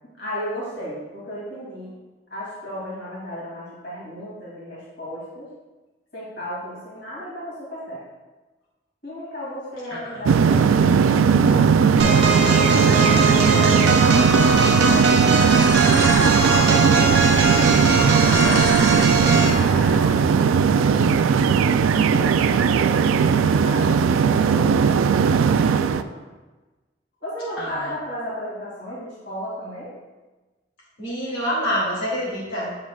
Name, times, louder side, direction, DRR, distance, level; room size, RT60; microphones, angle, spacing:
voice 1, 0.2-1.9 2.3-5.5 6.1-8.0 9.0-14.5 16.1-17.7 18.0-21.2 21.9-26.2 27.2-29.9, equal, 55° left, -7 dB, 2.5 m, -35 dB
sound 1, 10.3-26.0, right 6 dB, 90° right, 0.3 m, -18 dB
sound 2, 12.0-19.6, right 3 dB, 60° right, 0.8 m, -21 dB
sound 3, 14.0-20.1, left 1 dB, 10° left, 0.6 m, -31 dB
voice 2, 27.6-27.9 31.0-32.8, equal, 80° left, -6 dB, 2.5 m, -27 dB
8.3 x 7.6 x 2.3 m, 1.2 s
head